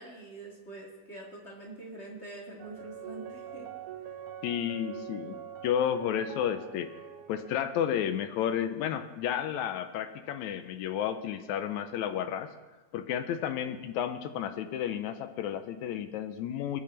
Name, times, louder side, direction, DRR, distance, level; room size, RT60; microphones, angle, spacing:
voice 1, 0.0-3.7, right 2 dB, 30° left, -2 dB, 1.4 m, -45 dB
sound 1, 2.6-7.7, right 10 dB, 80° right, 2.3 m, -44 dB
voice 2, 4.4-5.4 5.6-6.9 7.3-12.5 12.9-16.8, left 9 dB, 80° left, 9 dB, 1.9 m, -32 dB
20.5 x 8.6 x 3.3 m, 1.1 s
omnidirectional pair, 3.6 m